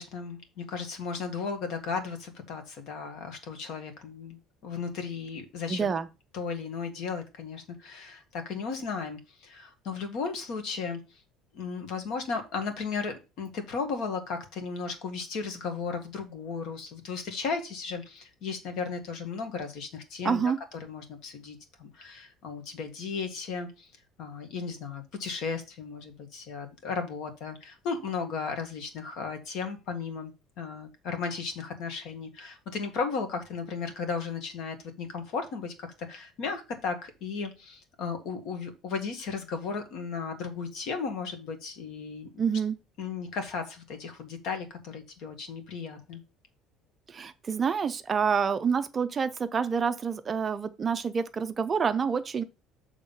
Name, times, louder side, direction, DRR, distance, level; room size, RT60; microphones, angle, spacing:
voice 1, 0.0-6.0 6.3-11.2 11.5-20.5 20.8-23.9 24.2-30.3 30.6-42.3 43.0-46.2, left 5 dB, 55° left, 1.6 m, -35 dB
voice 2, 5.7-6.1 20.2-20.6 42.4-42.8 47.1-52.4, right 6 dB, 20° right, 0.4 m, -27 dB
7.3 x 3.6 x 5.4 m
cardioid pair, 170°, 0 cm